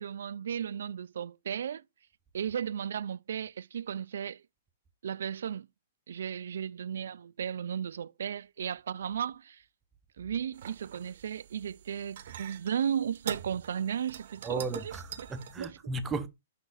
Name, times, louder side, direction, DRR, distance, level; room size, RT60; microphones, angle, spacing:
voice 1, 0.0-1.8 2.3-4.4 5.0-5.7 6.1-9.6 10.2-14.9 15.6-15.8, right 8 dB, 75° right, 0.3 m, -35 dB
sound 1, 10.5-15.6, right 9 dB, 55° right, 0.8 m, -44 dB
voice 2, 14.4-16.3, right 4 dB, 10° right, 0.6 m, -35 dB
5.7 x 4.1 x 3.9 m
hypercardioid pair, 160°, 0 cm